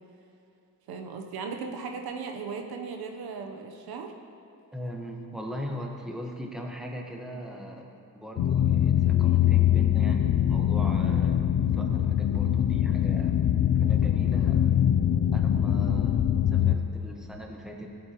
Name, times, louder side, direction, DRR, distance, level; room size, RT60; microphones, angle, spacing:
voice 1, 0.9-4.1 14.4-14.6, right 5 dB, 85° right, 4 dB, 0.9 m, -37 dB
voice 2, 4.7-7.9 8.1-13.4 13.8-14.8 15.3-17.9, equal, ahead, 0 dB, 1.3 m, -39 dB
sound 1, 8.4-16.8, left 10 dB, 60° left, 0.6 m, -23 dB
15.5 x 8.3 x 3.0 m, 3.0 s
cardioid pair, 95°, 37 cm